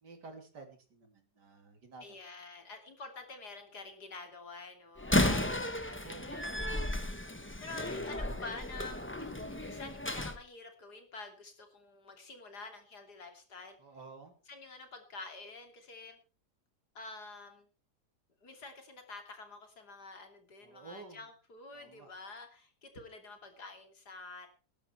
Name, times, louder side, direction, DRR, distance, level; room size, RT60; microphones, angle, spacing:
voice 1, 0.0-2.2 5.9-6.9 13.8-14.4 20.6-21.3 21.7-22.1, right 4 dB, 85° right, 5 dB, 3.4 m, -52 dB
voice 2, 2.0-7.0 7.6-13.8 14.5-16.2 16.9-17.7 18.4-24.5, left 3 dB, 70° left, 5 dB, 3.4 m, -48 dB
Slam, 5.0-10.4, left 1 dB, 10° left, 0.9 m, -33 dB
19.0 x 11.0 x 4.5 m, 0.35 s
omnidirectional pair, 1.8 m